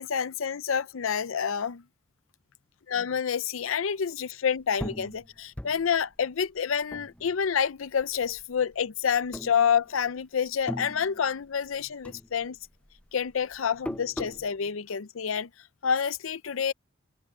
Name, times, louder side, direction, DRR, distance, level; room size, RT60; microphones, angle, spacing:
voice 1, 0.0-1.8 2.9-12.6 13.1-15.5 15.8-16.7, left 7 dB, 85° left, 0.6 m, -28 dB
sound 1, 4.8-7.7 8.0-8.8 9.3-10.2 10.4-11.8 12.0-14.5, left 1 dB, 5° left, 0.6 m, -39 dB
head